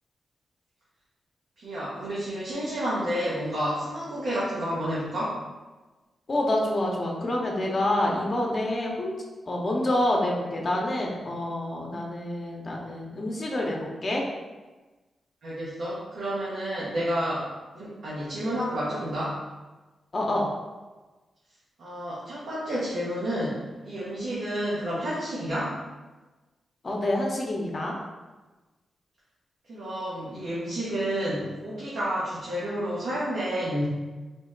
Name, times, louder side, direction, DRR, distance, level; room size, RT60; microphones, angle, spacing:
voice 1, 1.6-5.3 15.4-19.4 21.8-25.8 29.7-33.8, equal, 85° right, -9 dB, 0.9 m, -30 dB
voice 2, 6.3-9.2 9.5-14.2 20.1-20.5 26.8-27.9, left 1 dB, 45° left, -2 dB, 0.7 m, -27 dB
3.7 x 2.1 x 3.8 m, 1.2 s
cardioid pair, 55°, 0 cm